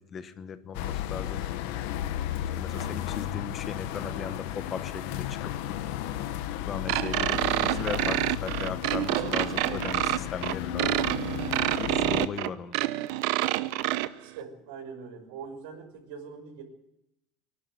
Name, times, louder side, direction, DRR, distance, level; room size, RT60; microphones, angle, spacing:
voice 1, 0.0-1.5 2.5-5.5 6.6-11.1 11.8-12.8, left 6 dB, 20° left, 12 dB, 1.1 m, -37 dB
sound 1, 0.7-12.3, left 11 dB, 60° left, 1.2 m, -34 dB
voice 2, 2.7-3.1 14.2-16.6, right 6 dB, 80° right, 1 dB, 5.8 m, -43 dB
sound 2, 6.9-14.1, right 17 dB, 55° right, 0.7 m, -27 dB
24.5 x 11.5 x 9.3 m, 0.85 s
cardioid pair, 175°, 0 cm